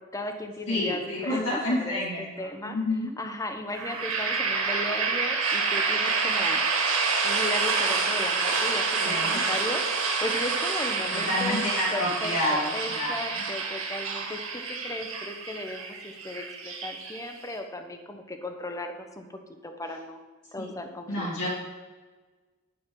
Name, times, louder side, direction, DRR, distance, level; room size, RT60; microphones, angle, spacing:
voice 1, 0.0-2.8 3.2-6.6 7.2-11.6 11.9-19.3 19.6-20.2 20.5-21.3, left 1 dB, 15° left, 5 dB, 1.1 m, -36 dB
voice 2, 0.7-3.1 9.0-9.4 11.1-13.5 20.6-20.7 21.1-21.5, left 1 dB, 65° left, -7 dB, 2.7 m, -29 dB
sound 1, 3.7-17.5, right 4 dB, 75° right, 2.5 m, -28 dB
11.0 x 9.6 x 4.0 m, 1.3 s
head